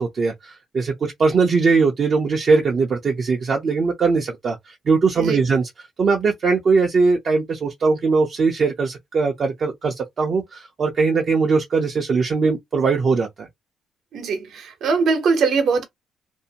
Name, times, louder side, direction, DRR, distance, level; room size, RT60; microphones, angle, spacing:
voice 1, 0.0-5.7 6.0-13.5, right 4 dB, 50° right, 0.5 m, -20 dB
voice 2, 14.1-15.8, right 5 dB, 70° right, 0.9 m, -21 dB
2.6 x 2.1 x 2.8 m
cardioid pair, 90°, 0 cm